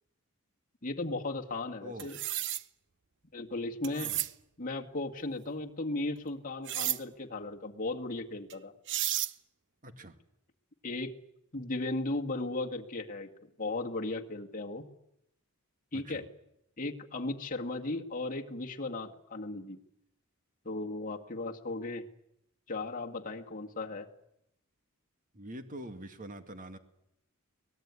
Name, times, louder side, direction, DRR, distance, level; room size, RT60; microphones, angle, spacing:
voice 1, 0.8-2.2 3.3-4.1 4.6-8.8 10.8-11.1 11.5-13.3 13.6-14.9 15.9-16.2 16.8-19.8 20.7-22.1 22.7-24.1, left 2 dB, 40° left, 1 dB, 2.0 m, -36 dB
voice 2, 1.8-2.1 3.9-4.2 9.8-10.2 15.9-16.2 25.3-26.8, right 1 dB, 40° right, 9 dB, 2.2 m, -45 dB
sound 1, 2.0-2.6 3.8-4.3 6.7-7.0 8.5-8.6 8.9-9.3, right 13 dB, 55° right, 0.9 m, -32 dB
24.0 x 19.0 x 9.7 m, 0.80 s
head